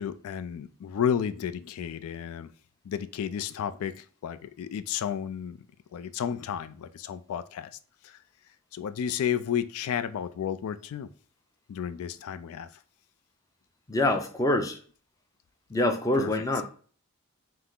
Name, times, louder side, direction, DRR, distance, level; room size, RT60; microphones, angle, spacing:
voice 1, 0.0-2.5 2.8-5.6 5.9-7.7 8.0-8.2 8.7-11.1 11.7-12.7 16.1-16.3, left 8 dB, 80° left, 13 dB, 0.3 m, -32 dB
voice 2, 13.9-14.8 15.7-16.6, left 1 dB, 15° left, 4 dB, 0.4 m, -25 dB
5.6 x 2.0 x 3.6 m, 0.43 s
head